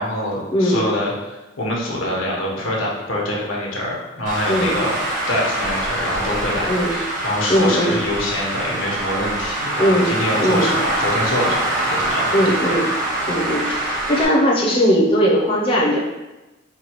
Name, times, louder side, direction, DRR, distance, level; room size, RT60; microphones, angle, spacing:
voice 1, 0.0-5.0 5.3-12.3 12.7-12.8, left 1 dB, 90° left, -3 dB, 1.0 m, -25 dB
voice 2, 0.5-0.8 4.5-4.8 6.7-6.9 7.5-8.0 9.8-10.7 12.3-12.9 13.3-16.0, equal, 30° left, -3 dB, 0.6 m, -19 dB
Traffic noise roadway noise, 4.3-14.3, right 1 dB, 40° right, 0.8 m, -24 dB
4.6 x 2.3 x 2.9 m, 1.1 s
head